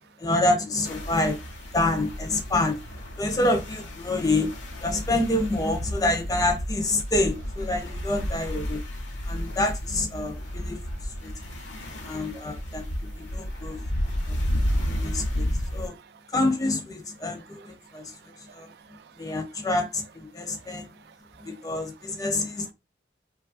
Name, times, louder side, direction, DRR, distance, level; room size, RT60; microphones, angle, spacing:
voice 1, 0.2-1.4 1.7-2.8 3.2-4.5 4.8-8.8 9.3-10.8 11.2-11.3 12.0-13.8 14.3-14.4 14.9-16.0 16.3-18.1 18.5-18.7 19.2-20.9 21.4-22.7, left 2 dB, 20° left, 0.4 m, -27 dB
sound 1, 0.8-15.9, equal, 90° left, 0.7 m, -32 dB
voice 2, 9.2-9.6 10.3-16.3 17.2-19.7 20.3-22.2, right 7 dB, 60° right, 0.3 m, -55 dB
3.0 x 2.3 x 2.4 m
head